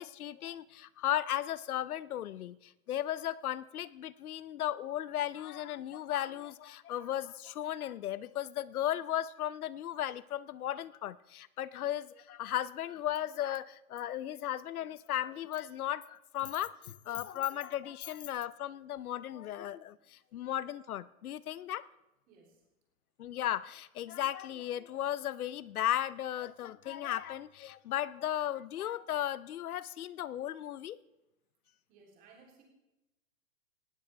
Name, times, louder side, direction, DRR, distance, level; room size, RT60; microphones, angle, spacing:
voice 1, 0.0-21.8 23.2-31.0, left 12 dB, 85° left, 18 dB, 0.7 m, -36 dB
voice 2, 22.3-22.6 31.9-32.6, right 4 dB, 20° right, -1 dB, 3.3 m, -60 dB
19.0 x 15.5 x 3.4 m, 0.95 s
hypercardioid pair, 170°, 43 cm